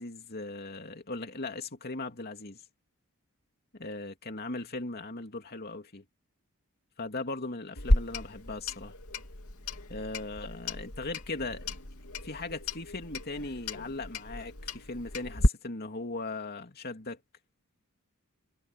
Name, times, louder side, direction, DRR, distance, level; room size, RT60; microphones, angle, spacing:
voice 1, 0.0-2.6 3.7-6.0 7.0-8.9 9.9-11.7 12.2-17.2, left 3 dB, 45° left, 2.7 m, -38 dB
Clock, 7.8-15.5, left 1 dB, 85° left, 2.7 m, -32 dB
head